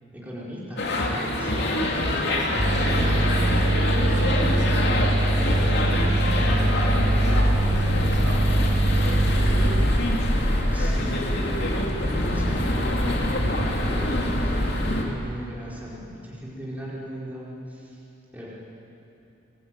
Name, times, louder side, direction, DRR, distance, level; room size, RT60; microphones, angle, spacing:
voice 1, 0.1-1.8 10.7-11.3 11.8-18.0 18.3-18.5, equal, 10° right, -7 dB, 4.7 m, -37 dB
sound 1, 0.8-15.0, left 1 dB, 55° left, 3.1 m, -24 dB
voice 2, 2.2-6.9 7.2-7.7 8.1-9.9 10.8-11.2, right 1 dB, 65° right, -1 dB, 6.7 m, -38 dB
sound 2, 2.6-9.9, right 1 dB, 25° right, 0.9 m, -23 dB
26.0 x 20.5 x 9.2 m, 2.9 s
head